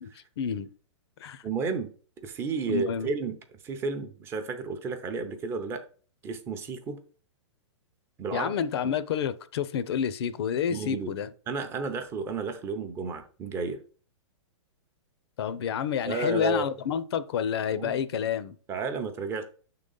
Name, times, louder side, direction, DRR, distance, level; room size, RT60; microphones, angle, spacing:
voice 1, 0.4-0.7 1.2-1.4 2.7-3.1 8.3-11.3 15.4-18.6, left 8 dB, 55° left, 0.6 m, -29 dB
voice 2, 1.4-1.9 2.2-3.4 3.6-5.8 6.2-7.0 8.2-8.5 10.7-11.1 11.5-13.8 16.1-16.7 17.7-18.0 18.7-19.4, right 4 dB, 15° right, 0.6 m, -32 dB
6.0 x 3.8 x 5.4 m
hypercardioid pair, 160°, 16 cm